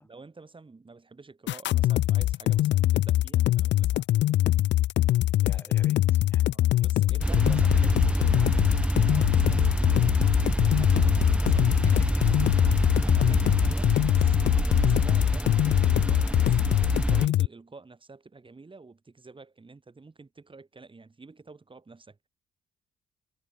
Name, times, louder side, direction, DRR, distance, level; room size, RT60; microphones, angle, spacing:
voice 1, 0.0-4.1 5.5-5.8 6.4-7.5 9.1-12.0 12.3-22.3, right 3 dB, 25° right, 6.0 m, -50 dB
sound 1, 1.5-17.5, left 14 dB, 65° left, 0.4 m, -23 dB
voice 2, 5.4-8.8 11.8-12.2, left 1 dB, 10° left, 5.0 m, -48 dB
sound 2, 7.2-17.3, right 1 dB, 5° right, 1.9 m, -26 dB
cardioid pair, 90°, 20 cm